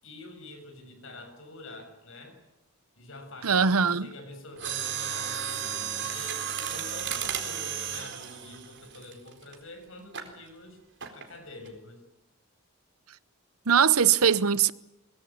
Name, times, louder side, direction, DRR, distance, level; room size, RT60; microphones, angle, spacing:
voice 1, 0.0-2.4 3.0-10.8 11.1-12.0, left 2 dB, 60° left, 7.1 m, -46 dB
voice 2, 3.4-4.1 13.7-14.7, right 7 dB, 80° right, 0.9 m, -21 dB
Mechanisms, 4.6-9.5 10.1-10.4 11.0-11.3 11.7-11.8, right 8 dB, 55° right, 4.3 m, -33 dB
23.0 x 22.0 x 8.7 m
head